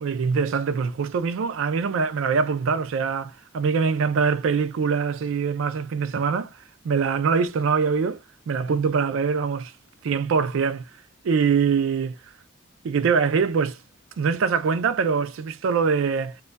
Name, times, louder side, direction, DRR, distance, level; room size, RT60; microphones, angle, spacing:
voice 1, 0.0-6.5 6.8-8.2 8.5-9.7 10.0-10.9 11.2-12.2 12.8-13.8 14.2-16.4, right 5 dB, 90° right, 0.4 m, -23 dB
2.2 x 2.2 x 3.8 m
head